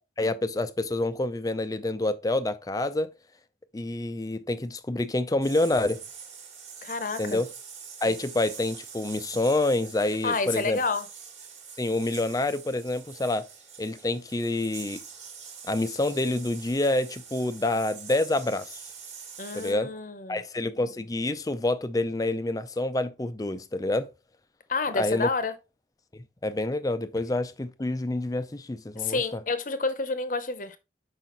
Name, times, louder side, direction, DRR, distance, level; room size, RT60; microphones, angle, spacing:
voice 1, 0.2-3.1 3.7-6.0 7.2-7.5 8.0-10.8 11.8-13.5 13.8-15.0 15.7-18.8 19.5-19.9 20.3-24.1 24.9-25.3 26.4-29.4, left 2 dB, 20° left, 0.4 m, -27 dB
sound 1, 5.4-19.7, right 6 dB, 35° right, 1.3 m, -45 dB
voice 2, 6.8-7.4 10.2-11.1 19.4-20.4 24.7-25.5 29.0-30.8, left 4 dB, 45° left, 0.8 m, -29 dB
6.0 x 4.9 x 3.9 m
head